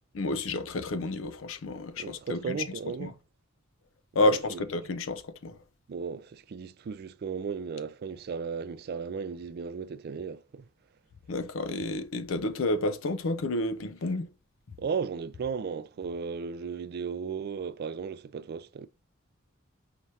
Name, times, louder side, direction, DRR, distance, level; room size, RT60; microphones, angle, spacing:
voice 1, 0.1-2.6 3.0-3.1 4.1-5.6 11.3-14.3, left 2 dB, 70° left, 0.5 m, -30 dB
voice 2, 2.0-3.2 4.1-4.6 5.9-10.6 14.8-18.9, right 6 dB, 50° right, 0.3 m, -35 dB
4.9 x 3.1 x 2.7 m
head